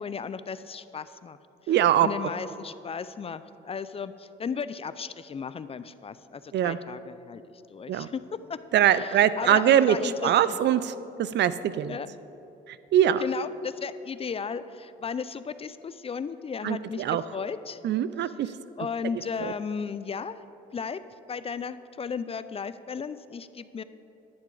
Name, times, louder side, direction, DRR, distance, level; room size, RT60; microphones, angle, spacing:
voice 1, 0.0-1.4 1.6-7.4 7.7-8.2 8.5-10.6 11.9-12.1 13.2-17.8 18.2-20.4 20.7-21.0 21.3-23.8, left 6 dB, 30° left, 14 dB, 0.3 m, -35 dB
voice 2, 1.7-2.1 6.5-6.8 7.9-8.1 8.7-10.0 10.2-10.9 11.2-11.9 12.9-13.2 16.6-17.2 17.8-18.5 19.4-19.5, right 10 dB, 60° right, 15 dB, 0.4 m, -22 dB
10.5 x 10.5 x 3.8 m, 2.9 s
cardioid pair, 90°, 20 cm